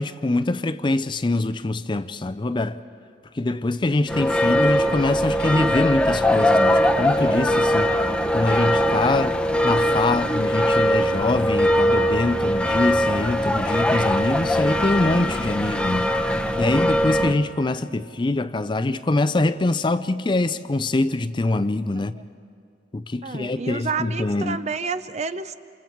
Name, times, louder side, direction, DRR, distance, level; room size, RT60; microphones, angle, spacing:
voice 1, 0.0-2.8 3.3-7.9 8.3-9.4 9.6-16.1 16.6-22.2 22.9-24.6, left 2 dB, 25° left, 0.5 m, -24 dB
sound 1, 4.1-17.4, equal, 5° left, 0.8 m, -21 dB
voice 2, 23.2-25.5, right 4 dB, 40° right, 0.7 m, -29 dB
29.0 x 27.0 x 4.6 m
head